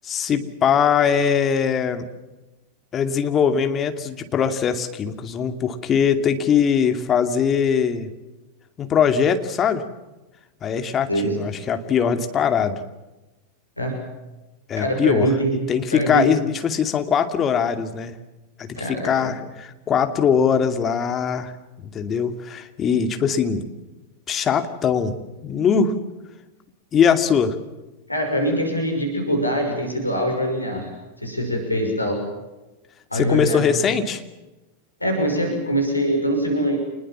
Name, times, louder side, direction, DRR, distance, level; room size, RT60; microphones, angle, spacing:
voice 1, 0.0-2.1 2.9-8.1 8.8-9.8 10.6-12.8 14.7-15.3 15.7-18.1 18.6-21.5 21.8-23.7 24.3-25.1 25.4-26.0 26.9-27.6 33.1-34.2, left 7 dB, 25° left, 8 dB, 2.5 m, -21 dB
voice 2, 14.8-15.6 15.9-16.3 18.8-19.3 28.1-30.9 31.2-32.2 33.1-33.7 35.0-36.8, right 1 dB, 85° left, 2 dB, 5.8 m, -23 dB
27.5 x 21.0 x 7.3 m, 1.1 s
figure-of-eight pair, 90°, 0 cm